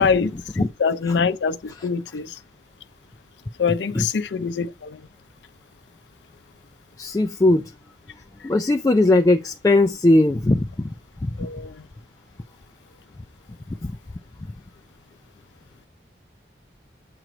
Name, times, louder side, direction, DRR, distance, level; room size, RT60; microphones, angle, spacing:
voice 1, 0.0-2.3 3.6-5.0 11.4-11.7, left 5 dB, 80° left, 0.5 m, -24 dB
voice 2, 7.0-7.7 8.4-10.9 11.2-11.3 13.8-13.9, left 2 dB, 20° left, 0.3 m, -19 dB
7.7 x 3.1 x 4.9 m
head